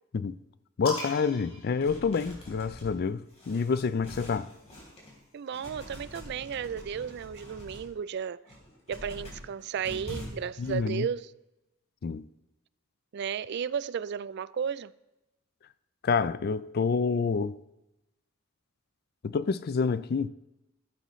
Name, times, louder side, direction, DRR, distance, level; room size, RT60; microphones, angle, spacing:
sound 1, 0.8-2.6 3.8-5.4, left 1 dB, 75° left, 4.3 m, -41 dB
voice 1, 0.8-4.5 10.6-11.1 12.0-12.3 16.0-17.6 19.2-20.3, left 5 dB, 50° left, 0.4 m, -28 dB
sound 2, 1.8-5.2 5.5-7.9 8.3-10.8, equal, 30° left, 4.0 m, -45 dB
voice 2, 5.3-8.4 8.9-11.3 13.1-14.9, right 7 dB, 55° right, 0.3 m, -34 dB
14.5 x 12.0 x 3.1 m
head